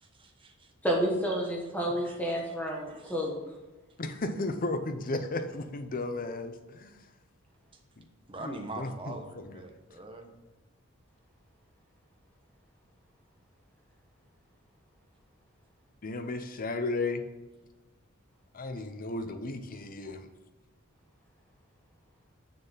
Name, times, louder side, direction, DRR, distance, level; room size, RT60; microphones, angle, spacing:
voice 1, 0.0-0.7 1.9-2.3 2.9-3.1 8.3-10.3, right 2 dB, 25° right, 4 dB, 1.1 m, -43 dB
voice 2, 0.8-3.4, equal, 10° left, -2 dB, 1.3 m, -30 dB
voice 3, 4.0-7.0 8.0-8.1 8.4-9.1 16.0-17.2 18.5-20.3, left 2 dB, 45° left, 9 dB, 0.7 m, -34 dB
7.0 x 6.6 x 5.5 m, 1.1 s
head